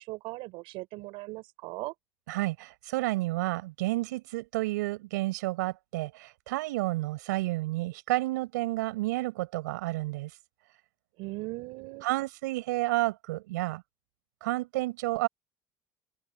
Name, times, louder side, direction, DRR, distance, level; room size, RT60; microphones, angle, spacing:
voice 1, 0.0-1.9 11.2-12.1, right 22 dB, 75° right, 5.2 m, -39 dB
voice 2, 2.3-10.3 12.0-13.8 14.4-15.3, right 19 dB, 90° right, 6.8 m, -30 dB
open air
supercardioid pair, 85°, 9 cm